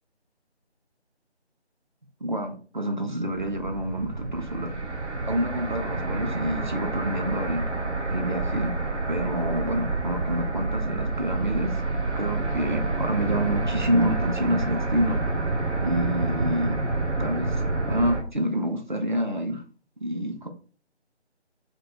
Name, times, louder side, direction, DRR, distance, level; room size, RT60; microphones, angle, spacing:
voice 1, 2.2-4.7 5.3-7.6 8.1-8.7 9.1-11.8 12.2-15.2 15.8-16.8 17.2-17.6 17.9-19.6 20.0-20.5, equal, 45° right, 0.6 m, -28 dB
sound 1, 3.2-18.2, right 2 dB, 90° right, 0.8 m, -28 dB
2.9 x 2.6 x 4.3 m
figure-of-eight pair, 160°, 34 cm